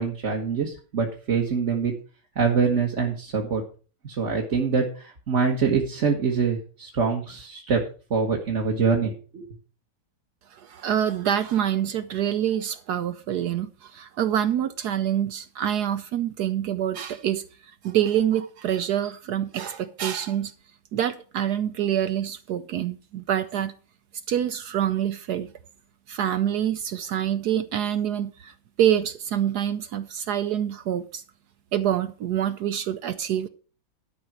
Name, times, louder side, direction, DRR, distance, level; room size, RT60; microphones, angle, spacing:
voice 1, 0.0-1.9 2.3-3.6 4.0-7.8 8.1-9.5, right 5 dB, 40° right, 1.6 m, -24 dB
voice 2, 10.6-17.4 17.8-20.5 20.9-23.7 24.3-25.5 26.1-28.5 28.8-31.2 31.7-33.5, right 10 dB, 70° right, 1.0 m, -26 dB
12.0 x 5.5 x 6.0 m
omnidirectional pair, 2.1 m